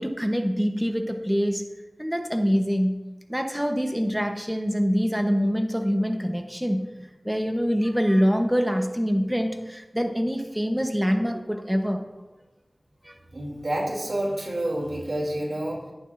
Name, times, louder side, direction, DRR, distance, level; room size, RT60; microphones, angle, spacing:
voice 1, 0.0-1.6 2.0-3.0 3.3-6.9 7.2-12.1 13.0-13.1, equal, 5° right, 5 dB, 0.9 m, -25 dB
voice 2, 13.3-15.9, right 1 dB, 70° right, -1 dB, 2.8 m, -29 dB
13.5 x 11.0 x 2.6 m, 1.1 s
wide cardioid pair, 60°, 0 cm